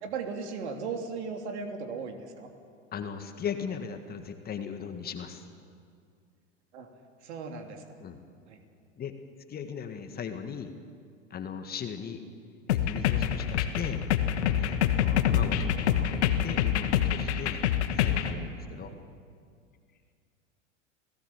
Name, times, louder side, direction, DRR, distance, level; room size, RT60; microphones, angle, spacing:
voice 1, 0.0-2.5 6.7-6.9 7.2-7.8 8.5-8.6 15.3-15.4 18.8-19.0, right 5 dB, 60° right, 4 dB, 3.1 m, -37 dB
voice 2, 2.9-5.4 8.0-8.2 9.0-9.1 9.5-10.7 11.3-12.2 12.7-14.0 14.6-17.7 18.0-18.9, left 7 dB, 25° left, 7 dB, 1.7 m, -38 dB
sound 1, 12.7-18.3, left 9 dB, 60° left, 1.6 m, -26 dB
28.5 x 17.5 x 7.3 m, 2.2 s
figure-of-eight pair, 90°, 38 cm